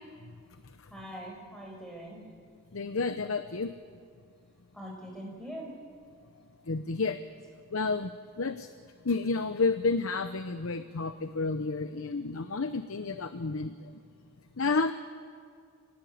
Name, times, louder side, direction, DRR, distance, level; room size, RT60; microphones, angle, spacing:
voice 1, 0.9-2.2 4.7-5.7, equal, 5° left, -1 dB, 5.3 m, -42 dB
voice 2, 2.7-3.7 6.7-7.2 7.7-8.1 8.4-8.7 9.0-13.9 14.6-14.9, left 3 dB, 75° left, 10 dB, 0.8 m, -30 dB
25.0 x 18.5 x 8.8 m, 2.2 s
head